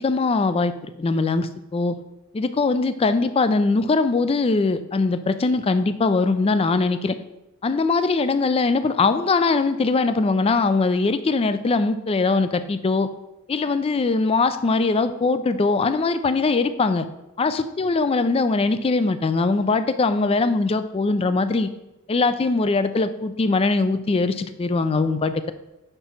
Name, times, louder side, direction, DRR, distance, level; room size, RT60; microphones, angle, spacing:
voice 1, 0.0-2.0 2.3-7.2 7.6-13.1 13.5-17.1 17.4-21.7 22.1-25.5, left 3 dB, 25° left, 11 dB, 0.3 m, -21 dB
5.0 x 4.4 x 5.7 m, 0.93 s
head